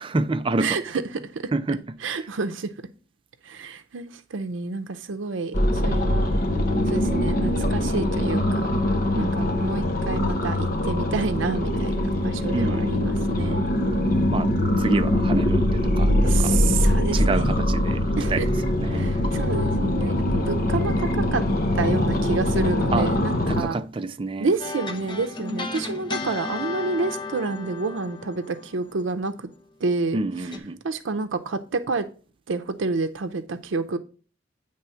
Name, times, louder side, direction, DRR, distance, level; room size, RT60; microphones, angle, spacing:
voice 1, 0.0-0.8 1.5-1.8 2.1-2.2 9.1-9.3 12.5-12.9 14.3-14.5 14.8-16.5 17.1-18.4 18.8-19.1 22.9-23.1 23.5-24.5 30.1-30.8, right 3 dB, 25° right, 0.4 m, -28 dB
voice 2, 0.6-1.4 2.0-2.7 3.4-6.3 6.9-8.7 9.2-13.7 16.2-17.5 18.2-18.5 18.9-21.4 21.7-23.9 24.4-29.5 29.8-30.5 30.8-32.1 32.5-34.0, right 3 dB, 85° right, 0.6 m, -29 dB
sound 1, 5.5-23.6, left 1 dB, 50° left, 1.0 m, -22 dB
sound 2, 24.6-29.6 30.5-30.6, left 3 dB, 25° left, 0.8 m, -34 dB
9.1 x 3.3 x 5.5 m
head